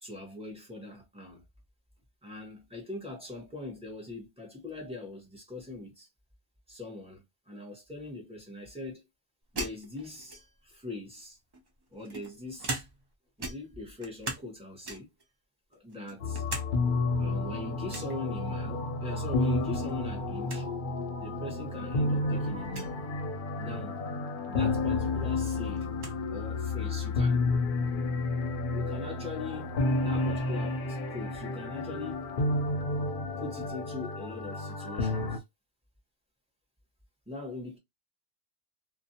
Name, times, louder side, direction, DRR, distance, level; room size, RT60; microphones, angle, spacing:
voice 1, 0.0-1.4 2.2-6.1 6.7-9.0 9.5-11.4 11.9-12.8 13.4-15.1 15.7-16.4 17.2-20.7 21.2-23.0 23.6-24.0 24.5-25.9 26.3-27.4 28.7-32.3 33.4-35.4 37.3-37.8, left 2 dB, 5° right, 1.0 m, -41 dB
sound 1, 9.6-10.7 11.5-13.1 13.4-14.5 14.8-15.2 15.7-16.7 17.0-17.1 17.9-18.2 19.6-19.9 20.2-20.3 20.5-20.7 21.5-21.6 22.6-22.9 24.6-24.7 25.0-26.2, right 2 dB, 35° right, 0.4 m, -39 dB
sound 2, 16.2-35.4, left 2 dB, 60° left, 0.7 m, -31 dB
2.5 x 2.1 x 2.7 m
omnidirectional pair, 1.1 m